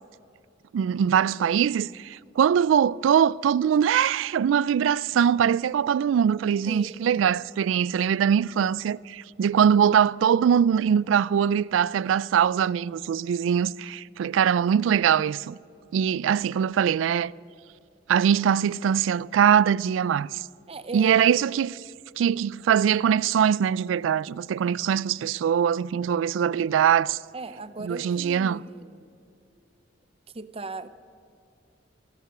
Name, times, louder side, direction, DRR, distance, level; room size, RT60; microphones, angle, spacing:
voice 1, 0.7-15.6 15.9-17.3 18.1-20.4 20.9-21.8 22.2-27.2 27.8-28.6, right 8 dB, 85° right, 0.3 m, -22 dB
voice 2, 6.7-7.2 20.7-21.5 27.3-29.1 30.3-30.9, right 3 dB, 30° right, 0.6 m, -38 dB
16.5 x 11.5 x 6.7 m
head